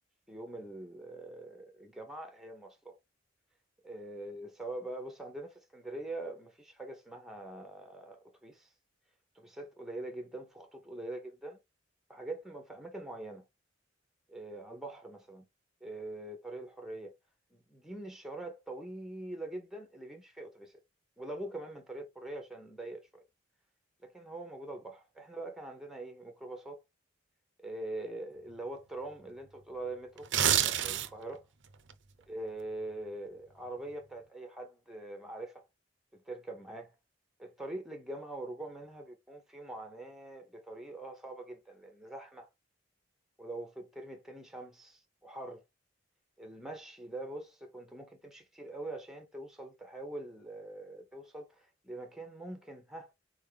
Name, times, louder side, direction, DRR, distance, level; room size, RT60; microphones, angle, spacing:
voice 1, 0.3-3.0 3.8-8.7 9.3-11.6 12.1-13.4 14.3-15.4 15.8-17.1 17.5-20.8 21.2-23.2 24.0-26.8 27.6-30.3 30.8-31.5 32.3-35.6 36.1-36.9 37.4-42.5 43.4-45.6 46.4-53.1, right 2 dB, ahead, 0.8 m, -43 dB
sound 1, 30.2-31.3 31.7-31.9, right 10 dB, 65° right, 0.6 m, -27 dB
4.4 x 3.5 x 3.3 m
head